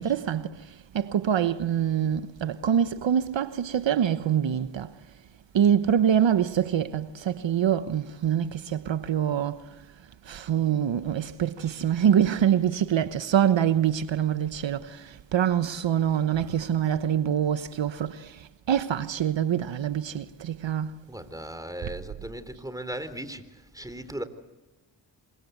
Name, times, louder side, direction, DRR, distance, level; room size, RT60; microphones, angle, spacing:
voice 1, 0.0-4.9 5.5-9.7 10.2-20.9, right 9 dB, 70° right, 1.2 m, -25 dB
voice 2, 16.1-16.7 21.1-24.2, right 1 dB, 5° right, 3.7 m, -38 dB
27.5 x 25.5 x 8.1 m
cardioid pair, 60°, 47 cm